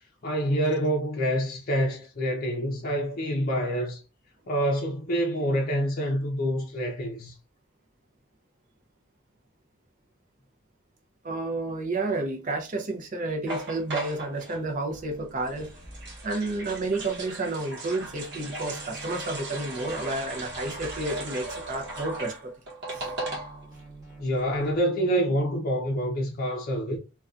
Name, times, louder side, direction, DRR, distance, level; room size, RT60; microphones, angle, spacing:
voice 1, 0.2-4.0 4.5-7.4 24.2-27.0, equal, 45° left, 0.5 m, -27 dB
voice 2, 11.2-15.7 16.2-22.5 22.9-23.1, right 2 dB, 40° right, 0.6 m, -31 dB
sound 1, 13.5-14.6 15.5-23.8 24.1-24.2 24.4-24.7, right 1 dB, 55° right, 0.9 m, -37 dB
sound 2, 14.9-17.7 18.0-22.7 22.9-24.8, right 1 dB, 15° right, 1.0 m, -49 dB
2.6 x 2.2 x 2.3 m
head